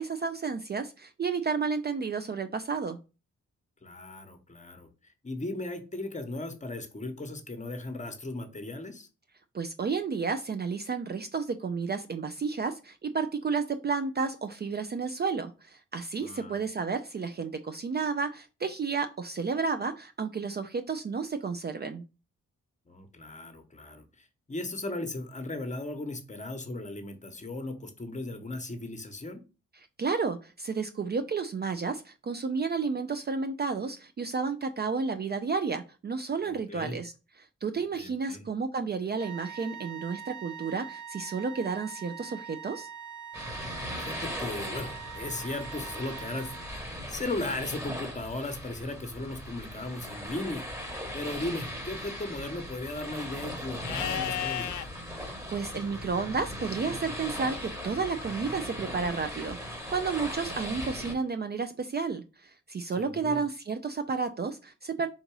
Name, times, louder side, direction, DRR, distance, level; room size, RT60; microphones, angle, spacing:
voice 1, 0.0-3.0 9.5-22.0 30.0-37.1 37.4-42.9 55.5-65.1, right 5 dB, 35° right, 0.4 m, -31 dB
voice 2, 3.8-9.1 16.2-16.6 22.9-29.4 36.4-37.0 37.9-38.5 43.9-50.7 51.1-54.9 63.0-63.4, left 2 dB, 25° left, 0.9 m, -37 dB
sound 1, 39.1-47.0, right 8 dB, 70° right, 1.2 m, -44 dB
sound 2, 43.3-61.1, equal, 10° right, 1.2 m, -39 dB
Livestock farm animals working animals, 53.8-54.9 57.7-58.7, left 11 dB, 80° left, 0.5 m, -35 dB
3.7 x 2.6 x 4.6 m
cardioid pair, 70°, 30 cm